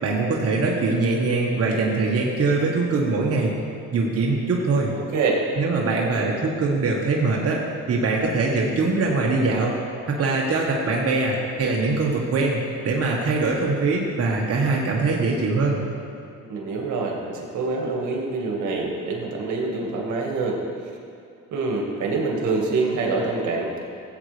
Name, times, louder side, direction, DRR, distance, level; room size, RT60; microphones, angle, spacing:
voice 1, 0.0-3.5 3.9-4.9 5.6-9.8 10.1-12.6 12.8-15.8, right 3 dB, 50° right, -2 dB, 1.4 m, -22 dB
voice 2, 16.5-20.6 21.5-23.7, right 3 dB, 75° right, -1 dB, 1.8 m, -25 dB
15.5 x 8.0 x 3.4 m, 2.4 s
cardioid pair, 90°, 30 cm